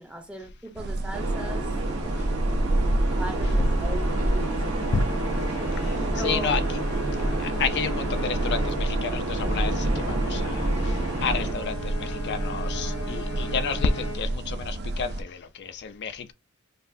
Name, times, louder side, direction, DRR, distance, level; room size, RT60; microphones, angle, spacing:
voice 1, 0.0-1.8 2.1-2.3 2.6-5.1 5.6-5.9 6.1-6.5, right 1 dB, 5° right, 0.7 m, -39 dB
sound 1, 0.8-15.2, right 1 dB, 50° right, 0.5 m, -29 dB
sound 2, 1.1-11.5, right 2 dB, 85° right, 1.3 m, -29 dB
sound 3, 3.2-14.7, left 1 dB, 70° left, 1.0 m, -38 dB
voice 2, 6.2-6.6 7.4-16.3, left 5 dB, 55° left, 0.4 m, -30 dB
5.4 x 2.4 x 2.6 m
head